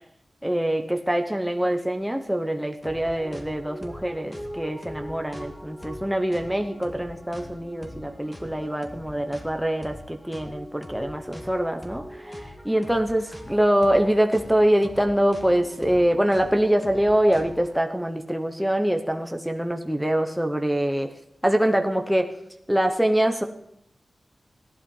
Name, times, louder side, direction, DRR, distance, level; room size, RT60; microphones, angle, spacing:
voice 1, 0.4-21.1 21.4-22.3 22.7-23.4, right 1 dB, 5° right, 4 dB, 0.9 m, -24 dB
sound 1, 2.8-17.7, equal, 15° left, 2.1 m, -41 dB
15.5 x 11.5 x 5.4 m, 0.78 s
wide cardioid pair, 95°, 0 cm